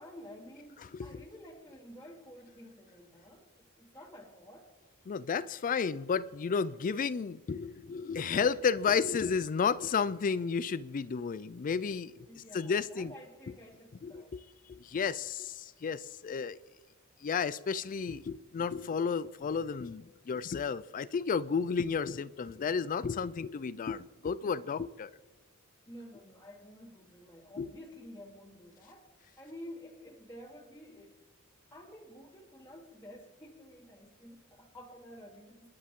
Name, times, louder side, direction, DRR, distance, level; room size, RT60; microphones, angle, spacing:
voice 1, 0.0-4.7 12.3-14.3 24.4-24.8 25.9-29.1 29.4-31.1 31.7-35.7, equal, 10° left, 2.3 m, -51 dB
voice 2, 5.1-12.3 12.5-13.1 14.0-14.4 14.7-16.6 17.2-25.1 27.6-27.7, left 6 dB, 40° left, 0.3 m, -32 dB
29.0 x 11.0 x 3.7 m
head